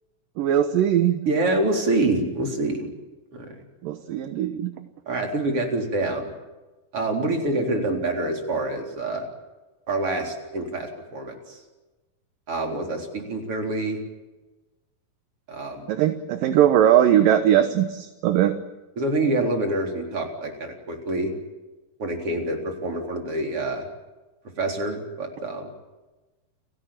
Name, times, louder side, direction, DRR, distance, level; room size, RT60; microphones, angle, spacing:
voice 1, 0.4-1.2 3.8-4.7 15.9-18.5, right 11 dB, 70° right, 9 dB, 2.7 m, -20 dB
voice 2, 1.3-2.9 3.3-3.5 5.1-6.3 6.9-9.3 9.9-11.6 12.5-14.0 15.5-15.9 19.0-21.3 22.0-23.9 24.6-25.7, right 2 dB, 40° right, 3 dB, 4.7 m, -26 dB
30.0 x 17.5 x 9.0 m, 1.1 s
omnidirectional pair, 4.2 m